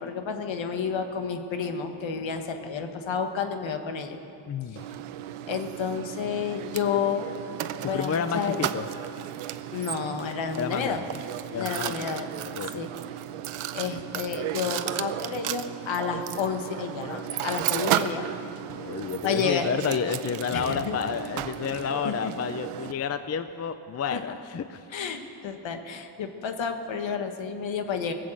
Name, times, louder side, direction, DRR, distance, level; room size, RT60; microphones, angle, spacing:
voice 1, 0.0-4.2 4.7-4.8 5.5-7.3 7.8-8.6 9.7-11.0 11.5-12.3 12.8-12.9 13.7-18.3 19.2-19.6 20.5-21.0 22.0-22.3 24.1-24.2 24.9-28.1, left 6 dB, 65° left, 6 dB, 1.4 m, -30 dB
voice 2, 4.5-4.8 7.9-8.8 10.6-11.1 11.5-12.1 12.6-12.7 18.7-24.9, left 7 dB, 35° left, 11 dB, 0.5 m, -30 dB
Mechanisms, 4.8-22.9, right 12 dB, 85° right, 0.7 m, -34 dB
19.5 x 7.6 x 7.5 m, 2.7 s
cardioid pair, 100°, 49 cm